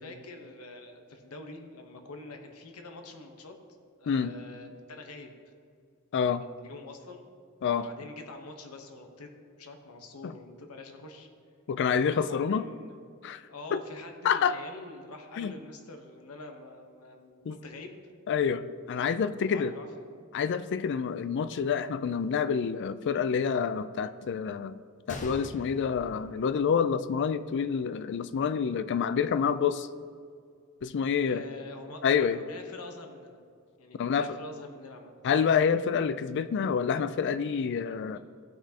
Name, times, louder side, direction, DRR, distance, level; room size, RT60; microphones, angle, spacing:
voice 1, 0.0-3.6 4.0-5.4 6.3-7.3 7.6-9.3 9.6-11.3 12.3-13.0 13.5-18.0 19.3-19.9 31.3-33.4 33.8-35.1 38.1-38.2, left 2 dB, 90° left, 4 dB, 1.0 m, -45 dB
voice 2, 6.1-6.4 7.6-7.9 10.2-10.3 11.7-12.7 13.2-13.4 13.7-13.8 14.2-14.6 15.4-15.5 17.5-17.6 18.3-19.7 20.3-24.8 25.1-29.9 30.8-31.4 32.0-32.4 34.0-34.4 35.2-38.2, left 6 dB, 55° left, 13 dB, 0.3 m, -27 dB
Gunshot gunfire, 25.1-27.1 27.4-27.5 28.2-28.4, left 1 dB, 35° left, 0.8 m, -43 dB
14.5 x 5.9 x 2.8 m, 2.2 s
head